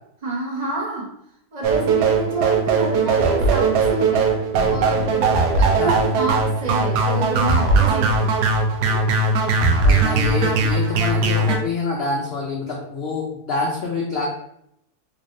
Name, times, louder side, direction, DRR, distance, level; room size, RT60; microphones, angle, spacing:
voice 1, 0.2-1.1 1.5-4.4 4.7-8.3 8.9-9.1, right 2 dB, 40° right, -3 dB, 0.6 m, -28 dB
sound 1, 1.6-11.6, right 3 dB, 85° right, 1.1 m, -19 dB
sound 2, 4.6-6.4, equal, 70° right, 1.3 m, -34 dB
voice 2, 9.8-14.3, left 3 dB, 70° left, -2 dB, 0.6 m, -26 dB
3.3 x 3.0 x 2.6 m, 0.74 s
omnidirectional pair, 1.7 m